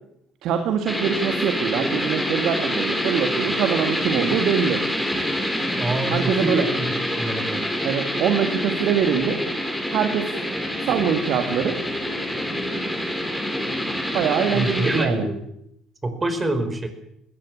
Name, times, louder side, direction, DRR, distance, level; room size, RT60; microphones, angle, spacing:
voice 1, 0.4-4.8 6.1-6.7 7.8-9.4 9.9-10.3 10.8-11.8 14.1-15.3, right 8 dB, 60° right, 6 dB, 2.1 m, -23 dB
sound 1, 0.9-15.0, equal, 5° left, 6.7 m, -26 dB
voice 2, 5.8-6.9 7.2-7.6 14.5-15.4 16.0-16.9, right 2 dB, 25° right, 8 dB, 5.1 m, -25 dB
20.5 x 17.0 x 8.8 m, 0.76 s
hypercardioid pair, 55°, 0 cm